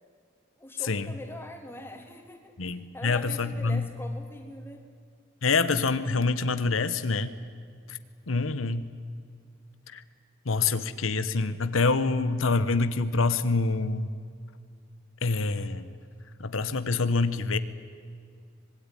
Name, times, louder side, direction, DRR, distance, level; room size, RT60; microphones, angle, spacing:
voice 1, 0.6-4.9, left 1 dB, 10° left, 4 dB, 2.9 m, -43 dB
voice 2, 2.6-3.9 5.4-7.3 7.9-8.0 8.3-8.9 9.9-10.0 10.4-14.1 15.2-15.9 16.4-17.6, left 3 dB, 85° left, 12 dB, 1.2 m, -26 dB
25.5 x 20.5 x 10.0 m, 2.2 s
head